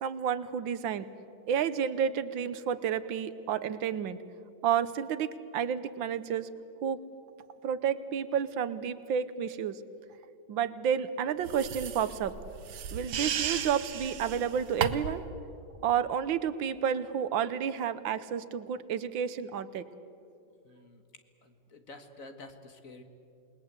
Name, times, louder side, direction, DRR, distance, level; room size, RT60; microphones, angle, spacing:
voice 1, 0.0-1.1 1.5-4.2 4.6-6.5 6.8-7.0 7.6-9.8 10.5-12.4 12.9-15.2 15.8-19.8, right 8 dB, 85° right, 14 dB, 1.7 m, -30 dB
sound 1, 11.5-15.3, right 7 dB, 65° right, 1.6 m, -35 dB
voice 2, 20.6-21.0 21.4-23.0, left 2 dB, 45° left, 7 dB, 1.9 m, -49 dB
28.0 x 20.5 x 8.2 m, 2.6 s
omnidirectional pair, 2.0 m